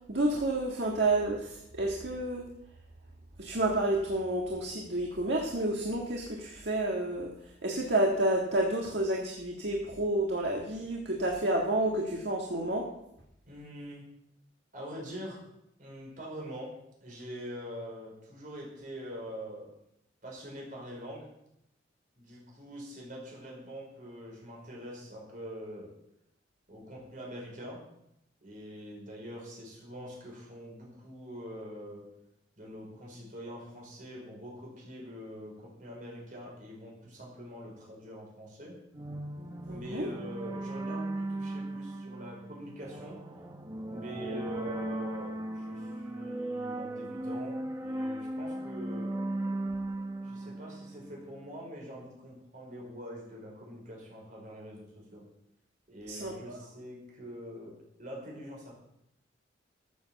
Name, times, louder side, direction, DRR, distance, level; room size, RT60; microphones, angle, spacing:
voice 1, 0.1-2.4 3.4-7.3 7.6-12.9 39.7-40.1 56.1-56.6, right 1 dB, 60° right, -1 dB, 1.7 m, -30 dB
voice 2, 13.5-14.0 14.7-15.4 15.8-16.7 17.0-19.7 20.2-21.3 22.2-25.9 26.7-27.8 28.4-32.1 32.6-38.8 39.6-43.2 43.9-49.2 50.2-55.3 55.9-58.7, equal, 45° right, -2 dB, 5.0 m, -44 dB
sound 1, 38.9-51.4, right 1 dB, 20° right, 1.0 m, -37 dB
13.5 x 7.1 x 7.1 m, 0.80 s
head